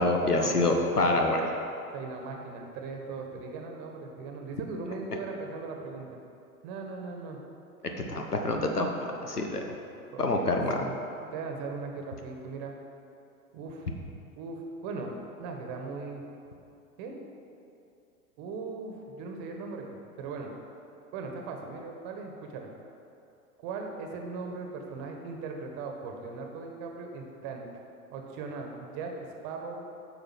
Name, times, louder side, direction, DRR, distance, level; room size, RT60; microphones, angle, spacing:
voice 1, 0.0-1.5 8.1-8.9 9.2-9.6 10.2-10.9, left 2 dB, 90° left, 3 dB, 1.1 m, -26 dB
voice 2, 1.9-6.2 6.6-7.4 10.1-10.9 11.3-12.7 13.5-13.9 14.4-15.1 15.4-16.2 17.0-17.2 18.4-20.6 21.1-22.7 23.6-27.7 28.1-29.8, right 4 dB, 40° right, 2 dB, 1.4 m, -39 dB
9.0 x 5.7 x 5.8 m, 2.7 s
figure-of-eight pair, 90°, 45 cm